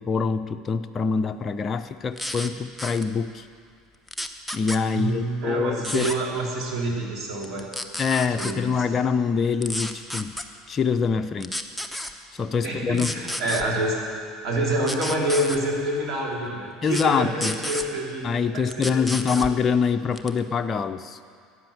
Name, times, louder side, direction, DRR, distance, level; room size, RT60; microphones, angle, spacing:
voice 1, 0.0-3.5 4.5-6.1 8.0-10.3 10.7-11.5 12.3-13.1 16.8-17.6 18.2-21.2, left 5 dB, 30° left, 8 dB, 0.5 m, -25 dB
sound 1, 2.2-2.5 2.8-3.0 4.1-4.8 5.8-6.2 7.4-8.5 9.6-10.4 11.4-12.1 12.9-13.6 14.8-15.6 16.9-17.1 17.4-17.9 18.7-19.5 20.2-20.4, left 1 dB, ahead, 0.9 m, -31 dB
voice 2, 4.9-7.7 8.4-8.9 12.6-14.0 14.4-19.4, right 1 dB, 45° right, -2 dB, 3.3 m, -27 dB
13.5 x 9.7 x 7.2 m, 2.2 s
figure-of-eight pair, 70°, 0 cm